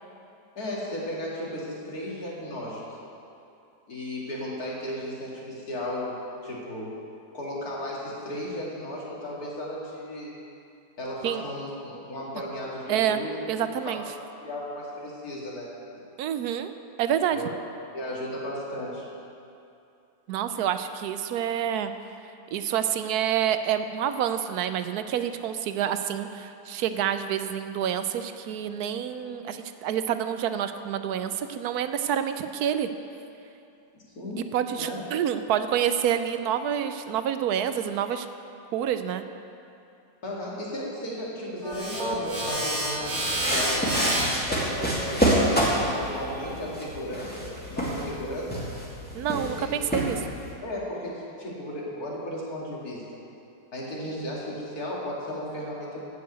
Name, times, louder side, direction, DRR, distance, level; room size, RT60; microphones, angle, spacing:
voice 1, 0.6-2.8 3.9-6.9 7.3-10.4 11.0-14.0 14.4-15.7 17.3-17.5 17.9-19.1 33.9-34.4 34.7-35.0 40.2-43.9 44.5-48.5 49.3-49.8 50.6-53.0 53.7-56.1, equal, 55° left, -5 dB, 2.7 m, -35 dB
voice 2, 12.9-13.2 13.5-14.0 16.2-16.7 17.0-17.4 20.3-21.9 22.5-32.9 34.5-38.3 38.7-39.2 49.1-50.2, right 9 dB, 70° right, 10 dB, 1.0 m, -28 dB
sound 1, 41.6-46.8, right 1 dB, 35° right, 2.2 m, -31 dB
sound 2, 43.0-50.5, equal, 5° left, 2.1 m, -28 dB
9.4 x 8.4 x 8.0 m, 2.6 s
omnidirectional pair, 2.0 m